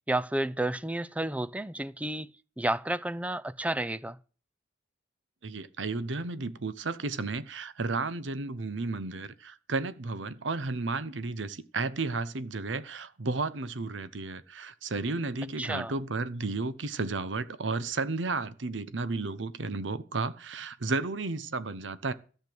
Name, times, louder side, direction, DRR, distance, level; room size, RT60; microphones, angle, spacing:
voice 1, 0.1-2.3 2.6-4.2 15.6-15.9, right 1 dB, 10° right, 0.5 m, -31 dB
voice 2, 5.4-22.1, right 3 dB, 80° right, 0.9 m, -33 dB
13.5 x 6.8 x 7.7 m
head